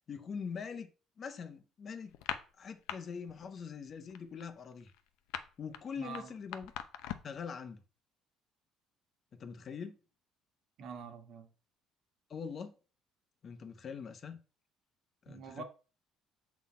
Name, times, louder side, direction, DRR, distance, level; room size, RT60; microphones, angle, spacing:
voice 1, 0.1-0.9 1.2-2.1 2.6-4.9 5.6-6.7 7.2-7.8 9.3-10.0 12.3-12.7 13.4-14.4 15.2-15.6, left 6 dB, 40° left, 0.8 m, -43 dB
sound 1, 2.1-3.0 3.3-3.6 3.9-7.4, left 11 dB, 90° left, 0.6 m, -41 dB
voice 2, 6.0-6.3 10.8-11.5 15.3-15.6, right 6 dB, 65° right, 1.4 m, -45 dB
7.0 x 4.2 x 4.2 m
cardioid pair, 125°, 0 cm